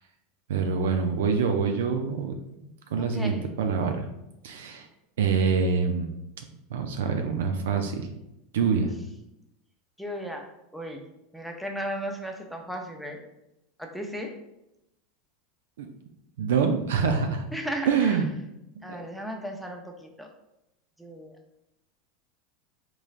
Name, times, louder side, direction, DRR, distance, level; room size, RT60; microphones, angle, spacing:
voice 1, 0.5-4.1 4.4-4.9 5.2-6.1 6.7-8.1 8.5-8.9 15.8-15.9 16.4-17.4 17.9-18.3 18.8-19.0, right 5 dB, 85° right, 5 dB, 0.4 m, -26 dB
voice 2, 3.0-3.4 10.0-10.5 10.7-11.0 11.3-13.2 13.8-14.3 17.5-18.2 18.8-20.3 21.0-21.3, equal, 5° right, 2 dB, 0.5 m, -35 dB
3.7 x 3.1 x 2.4 m, 0.87 s
supercardioid pair, 110°, 0 cm